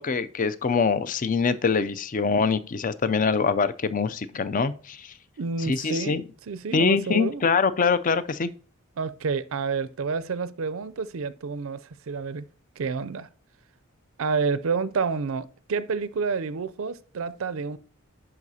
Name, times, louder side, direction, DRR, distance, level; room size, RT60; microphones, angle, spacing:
voice 1, 0.0-5.1 5.6-6.2 6.7-8.5, left 5 dB, 35° left, 0.4 m, -24 dB
voice 2, 5.4-7.4 9.0-12.5 12.8-13.3 14.2-17.8, right 5 dB, 65° right, 0.4 m, -29 dB
11.0 x 4.9 x 2.7 m
head